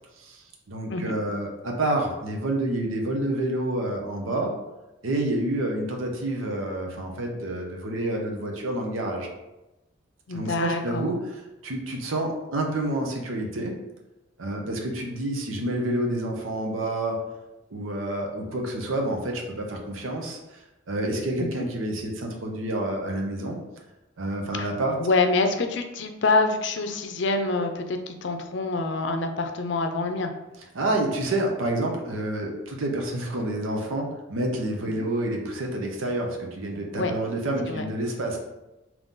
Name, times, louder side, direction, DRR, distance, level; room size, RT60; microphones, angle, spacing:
voice 1, 0.2-4.5 5.0-9.3 10.3-11.2 11.6-13.7 14.4-17.2 17.7-20.4 20.9-23.6 24.2-25.0 30.7-38.4, right 1 dB, 85° right, 1 dB, 0.8 m, -28 dB
voice 2, 10.3-11.0 21.4-21.5 24.5-24.7 25.0-30.3 35.0-35.1 36.9-37.1 37.7-37.8, left 3 dB, 65° left, 5 dB, 0.5 m, -26 dB
3.7 x 3.0 x 3.9 m, 0.99 s
head